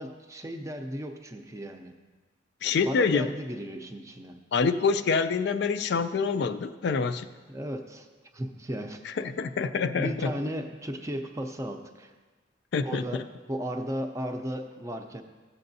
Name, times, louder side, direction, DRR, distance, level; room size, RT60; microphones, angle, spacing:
voice 1, 0.0-1.9 2.6-4.4 7.5-8.1 8.3-9.0 10.0-12.1 12.8-13.2 13.5-15.2, equal, 15° right, 5 dB, 0.5 m, -35 dB
voice 2, 2.6-3.3 4.5-7.3 9.2-10.3 12.7-13.2, left 5 dB, 55° left, 10 dB, 0.3 m, -26 dB
14.5 x 7.6 x 2.7 m, 1.4 s
head